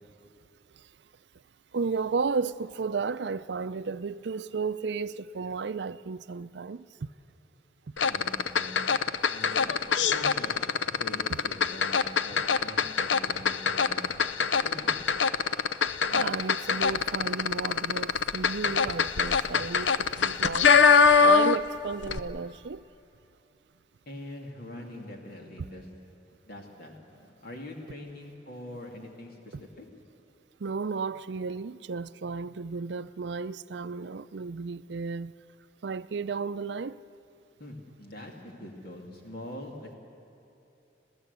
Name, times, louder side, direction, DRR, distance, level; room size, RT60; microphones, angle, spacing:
voice 1, 1.7-7.1 7.9-8.0 11.3-11.4 16.1-20.8 21.2-22.8 25.6-25.7 29.5-29.6 30.6-35.3 35.8-37.0, right 5 dB, 70° right, 0.5 m, -33 dB
sound 1, 8.0-21.8 22.0-22.2, left 5 dB, 90° left, 0.7 m, -23 dB
voice 2, 8.1-8.8 9.3-15.0 24.1-25.9 26.5-29.9 37.6-39.9, left 1 dB, 55° left, 2.4 m, -44 dB
26.5 x 15.5 x 8.2 m
head